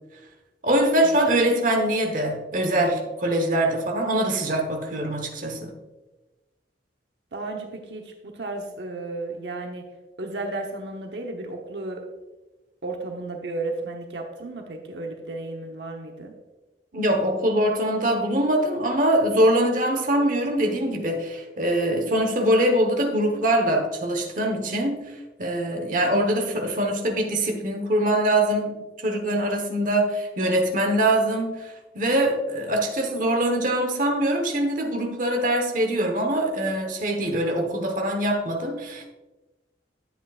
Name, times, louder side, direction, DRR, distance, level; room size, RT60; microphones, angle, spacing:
voice 1, 0.6-5.7 16.9-25.0 25.4-28.7 29.0-39.1, right 1 dB, 50° right, 3 dB, 1.1 m, -23 dB
voice 2, 7.3-9.9 10.2-12.1 12.8-16.3, right 2 dB, 80° right, 2 dB, 0.9 m, -33 dB
10.5 x 8.1 x 2.4 m, 1.1 s
head